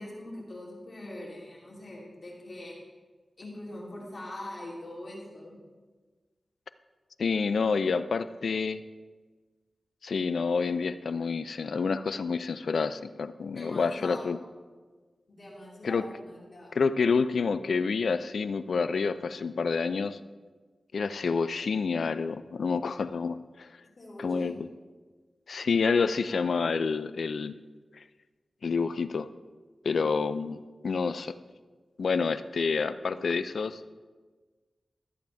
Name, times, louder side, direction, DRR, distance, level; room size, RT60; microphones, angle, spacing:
voice 1, 0.0-2.8 3.4-5.6 13.4-14.2 15.3-16.9 24.0-24.5, left 1 dB, 55° left, -4 dB, 3.4 m, -43 dB
voice 2, 7.2-8.8 10.0-14.4 15.8-16.1 16.7-20.2 20.9-23.7 24.2-24.7 25.5-27.6 28.6-29.3 29.8-31.3 32.0-33.9, left 5 dB, 80° left, 13 dB, 0.4 m, -28 dB
14.0 x 8.4 x 3.5 m, 1.4 s
cardioid pair, 55°, 0 cm